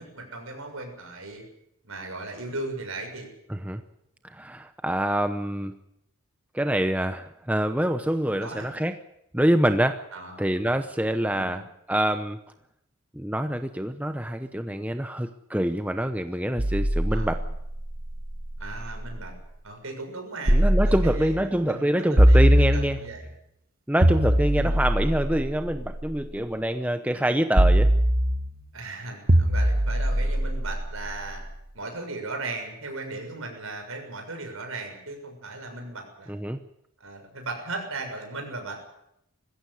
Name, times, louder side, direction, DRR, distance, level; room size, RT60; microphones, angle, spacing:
voice 1, 0.0-1.4 1.8-3.3 8.4-8.7 10.1-10.8 11.3-11.6 17.1-17.4 18.6-19.3 19.6-20.6 20.8-23.3 24.6-24.8 28.7-31.4 31.7-36.4 37.0-38.9, right 2 dB, 70° right, 4 dB, 6.8 m, -37 dB
voice 2, 3.5-3.8 4.3-5.7 6.5-9.0 9.3-10.0 10.4-11.6 11.9-12.4 13.1-17.4 20.5-23.0 23.9-27.9 36.3-36.6, right 1 dB, 5° right, 8 dB, 0.8 m, -25 dB
sound 1, 16.6-19.3 20.5-21.5 22.2-23.3 24.0-26.3 27.6-28.7 29.3-31.4, equal, 40° right, 1.7 m, -22 dB
21.0 x 16.0 x 9.9 m, 0.80 s
head